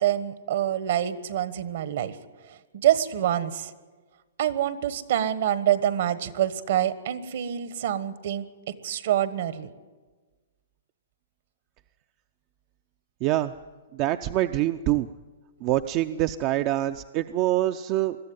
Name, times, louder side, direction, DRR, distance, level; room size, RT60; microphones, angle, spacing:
voice 1, 0.0-2.2 2.5-3.7 4.4-9.7, right 11 dB, 60° right, 14 dB, 1.3 m, -26 dB
voice 2, 13.2-13.5 13.9-15.1 15.6-18.2, right 14 dB, 35° right, 9 dB, 0.5 m, -25 dB
21.0 x 13.0 x 9.4 m, 1.4 s
hypercardioid pair, 140°, 0 cm